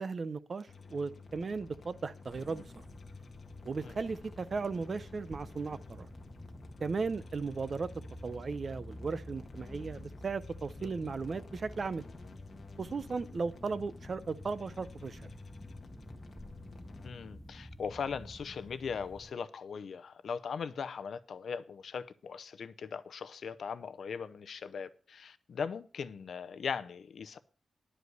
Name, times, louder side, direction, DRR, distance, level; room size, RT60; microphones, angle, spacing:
voice 1, 0.0-2.8 3.6-6.1 6.8-7.9 8.2-12.0 12.8-15.3, right 4 dB, 40° right, 0.6 m, -36 dB
sound 1, 0.7-17.1, left 4 dB, 45° left, 1.6 m, -52 dB
sound 2, 2.2-19.3, left 1 dB, 5° left, 0.7 m, -50 dB
voice 2, 10.8-11.1 17.0-27.4, left 6 dB, 70° left, 0.7 m, -39 dB
11.0 x 5.0 x 8.0 m
wide cardioid pair, 155°, 0 cm